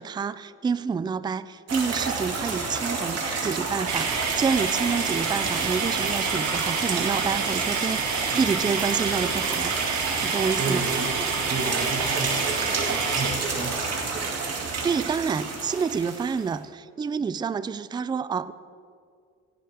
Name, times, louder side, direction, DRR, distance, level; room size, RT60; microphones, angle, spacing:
voice 1, 0.0-9.8 10.2-10.9 14.8-18.5, right 5 dB, 15° right, 16 dB, 0.3 m, -28 dB
sound 1, 1.7-16.5, right 4 dB, 55° right, 2.5 m, -29 dB
sound 2, 3.9-13.3, right 5 dB, 75° right, 1.8 m, -29 dB
voice 2, 10.5-13.9 14.1-14.9, right 3 dB, 35° right, 4 dB, 1.6 m, -33 dB
17.5 x 11.0 x 3.5 m, 2.3 s
cardioid pair, 90°, 30 cm